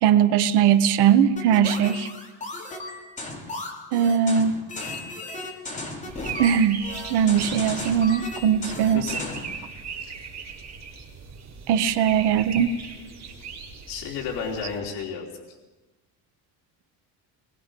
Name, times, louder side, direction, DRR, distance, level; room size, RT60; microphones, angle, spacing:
voice 1, 0.0-2.1 3.9-4.6 6.4-6.8 7.1-9.0 11.7-12.8, right 8 dB, 70° right, 12 dB, 1.1 m, -20 dB
sound 1, 1.4-9.5, left 2 dB, 15° left, 2.9 m, -35 dB
sound 2, 6.1-14.8, right 5 dB, 40° right, 4.3 m, -39 dB
voice 2, 8.9-9.3 9.5-9.8 13.9-15.6, left 6 dB, 65° left, -3 dB, 3.2 m, -33 dB
24.5 x 21.5 x 5.3 m, 1.2 s
cardioid pair, 165°, 42 cm